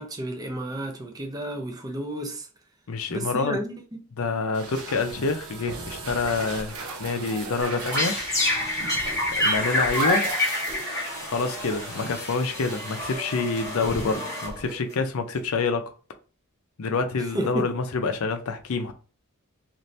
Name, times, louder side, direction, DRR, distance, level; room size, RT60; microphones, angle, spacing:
voice 1, 0.0-2.5 3.1-3.7 17.3-17.7, right 1 dB, 15° right, 0.5 m, -31 dB
voice 2, 2.9-3.6 4.2-8.2 9.4-10.3 11.2-15.9 16.8-18.9, left 4 dB, 70° left, 0.5 m, -27 dB
sound 1, 4.5-13.2, right 3 dB, 75° right, 0.6 m, -38 dB
sound 2, 7.6-14.9, left 1 dB, 15° left, 1.2 m, -28 dB
2.7 x 2.5 x 3.1 m
head